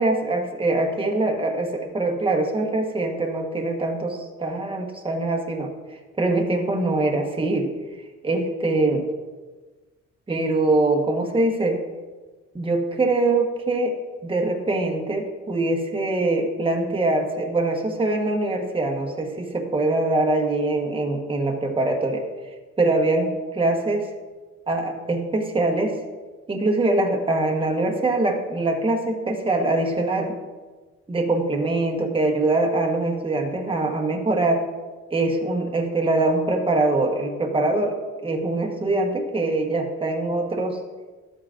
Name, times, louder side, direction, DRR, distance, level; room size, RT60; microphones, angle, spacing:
voice 1, 0.0-5.7 6.1-7.7 8.2-9.1 10.3-11.8 12.5-13.9 14.2-22.3 22.8-24.1 24.7-26.0 26.5-30.4 31.1-34.6 35.1-40.8, right 2 dB, 15° right, 2 dB, 1.3 m, -23 dB
12.5 x 8.7 x 2.6 m, 1.3 s
cardioid pair, 90°, 30 cm